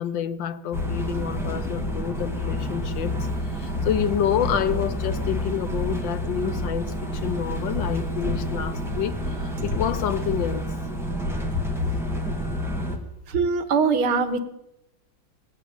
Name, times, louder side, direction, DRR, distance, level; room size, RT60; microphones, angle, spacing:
voice 1, 0.0-3.1 3.6-6.9 7.2-9.2 9.6-10.6, left 9 dB, 70° left, 1.3 m, -28 dB
sound 1, 0.7-13.0, equal, ahead, 2.0 m, -29 dB
voice 2, 13.3-14.4, right 5 dB, 85° right, 2.1 m, -22 dB
18.5 x 8.6 x 8.6 m
omnidirectional pair, 2.3 m